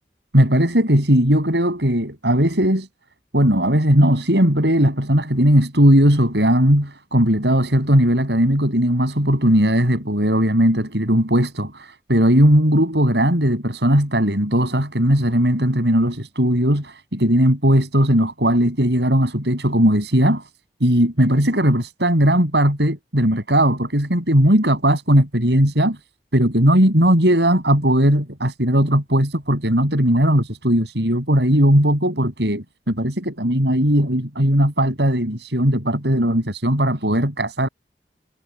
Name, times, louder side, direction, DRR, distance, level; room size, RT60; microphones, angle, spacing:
voice 1, 0.3-2.9 3.3-20.4 20.8-26.0 26.3-37.7, equal, 80° right, 7.1 m, -18 dB
head